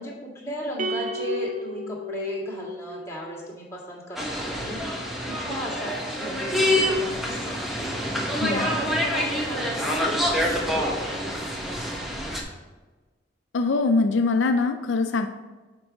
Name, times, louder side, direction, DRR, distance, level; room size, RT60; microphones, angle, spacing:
voice 1, 0.0-7.9 8.3-12.3, equal, 15° left, -4 dB, 1.9 m, -36 dB
sound 1, 0.8-3.3, equal, 45° right, 0.7 m, -32 dB
sound 2, 4.2-12.4, left 1 dB, ahead, 1.0 m, -27 dB
voice 2, 13.5-15.3, left 3 dB, 80° left, 6 dB, 0.5 m, -22 dB
7.0 x 4.7 x 5.1 m, 1.3 s
head